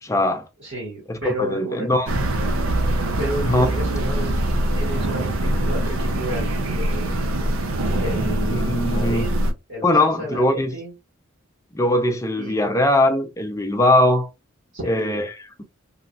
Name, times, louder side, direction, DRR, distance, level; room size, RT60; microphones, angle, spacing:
voice 1, 0.0-0.5 1.1-2.1 3.4-3.7 8.5-9.3 9.8-10.7 11.7-14.3 14.9-15.4, left 1 dB, 15° left, 0.4 m, -20 dB
voice 2, 0.6-1.9 3.2-4.3 4.7-7.1 8.0-9.3 9.7-10.9 12.4-12.7 14.7-15.3, right 1 dB, 60° right, 1.8 m, -31 dB
sound 1, 2.1-9.5, right 1 dB, 85° right, 0.5 m, -23 dB
3.0 x 2.7 x 2.3 m
head